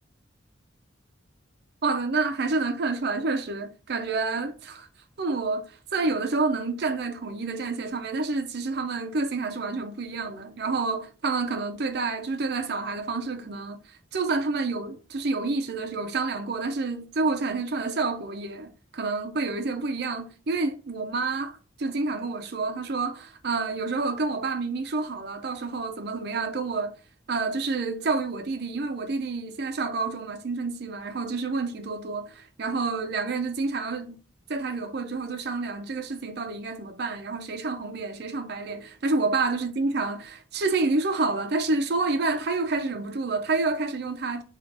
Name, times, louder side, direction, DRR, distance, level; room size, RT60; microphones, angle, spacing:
voice 1, 1.8-4.9 5.2-27.0 27.3-34.2 34.5-44.4, right 3 dB, 55° right, 0.5 m, -28 dB
3.9 x 2.4 x 4.4 m
head